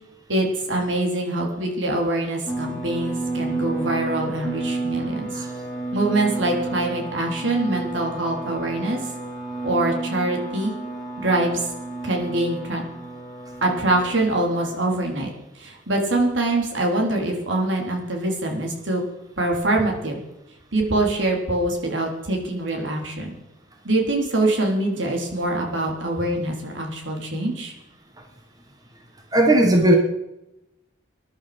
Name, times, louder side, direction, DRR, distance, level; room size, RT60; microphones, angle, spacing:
voice 1, 0.3-5.4 5.9-9.0 9.6-10.7 11.2-11.7 12.0-12.8 13.6-19.0 19.4-20.2 20.7-23.3 23.8-27.7, right 2 dB, 75° right, 0 dB, 3.9 m, -24 dB
sound 1, 2.5-15.0, right 2 dB, ahead, 3.8 m, -31 dB
voice 2, 29.3-30.0, right 1 dB, 20° right, 3 dB, 1.5 m, -15 dB
20.5 x 11.5 x 5.2 m, 0.91 s
head